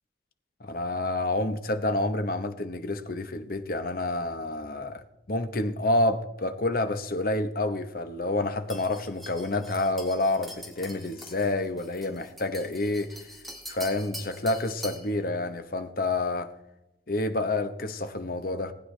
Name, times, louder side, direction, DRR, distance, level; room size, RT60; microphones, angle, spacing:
voice 1, 0.6-13.2 13.7-16.5 17.1-18.7, left 2 dB, 55° left, 8 dB, 0.9 m, -28 dB
sound 1, 8.7-15.1, equal, ahead, 1.9 m, -44 dB
19.0 x 9.6 x 3.3 m, 0.94 s
head